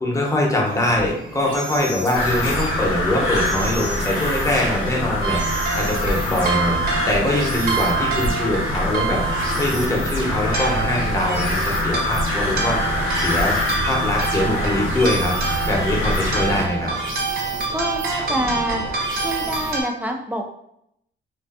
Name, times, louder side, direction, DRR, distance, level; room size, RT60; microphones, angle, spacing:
voice 1, 0.0-5.4 5.7-6.8 7.1-9.2 9.6-15.3 15.6-16.9, left 1 dB, 15° left, -1 dB, 0.7 m, -23 dB
sound 1, 0.6-19.7, right 1 dB, 75° right, 0.8 m, -33 dB
sound 2, 2.1-16.7, left 1 dB, 90° left, 0.6 m, -25 dB
sound 3, 5.2-19.8, right 5 dB, 50° right, 0.6 m, -28 dB
voice 2, 17.7-18.8 19.2-20.4, equal, 10° right, 3 dB, 0.3 m, -26 dB
2.5 x 2.4 x 2.3 m, 0.76 s
cardioid pair, 90°, 20 cm